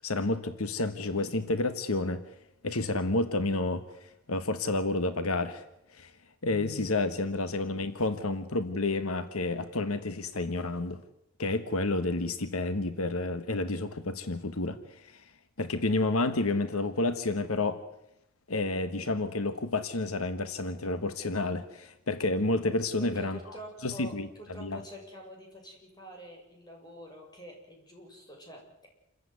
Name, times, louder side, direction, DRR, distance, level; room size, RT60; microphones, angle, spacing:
voice 1, 0.0-2.2 2.6-3.8 4.3-5.6 5.9-6.1 6.4-11.0 11.4-14.8 15.6-17.8 18.5-23.4 23.8-24.3 24.6-24.8, left 2 dB, 90° left, 11 dB, 1.4 m, -30 dB
voice 2, 23.0-24.1 24.4-28.6, equal, 20° left, 1 dB, 7.3 m, -46 dB
28.5 x 15.0 x 9.5 m, 0.86 s
head